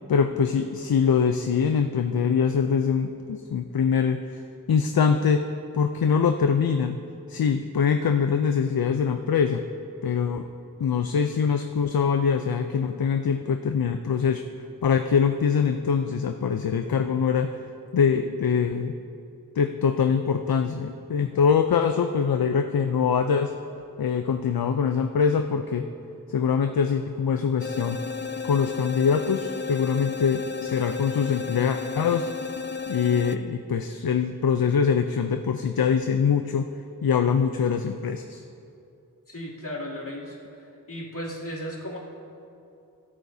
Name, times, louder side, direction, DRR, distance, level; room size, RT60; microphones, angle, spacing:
voice 1, 0.1-4.4 4.7-5.5 5.7-7.0 7.3-9.6 10.0-10.5 10.8-14.4 14.8-17.5 17.9-18.9 19.6-23.5 24.0-25.9 26.3-28.0 28.4-32.3 32.9-36.7 37.0-38.4, left 6 dB, 80° left, 7 dB, 0.5 m, -23 dB
sound 1, 27.6-33.4, left 5 dB, 30° left, 0.5 m, -33 dB
voice 2, 39.3-42.0, equal, 60° left, -6 dB, 2.9 m, -36 dB
23.0 x 8.9 x 2.7 m, 2.6 s
wide cardioid pair, 45°, 36 cm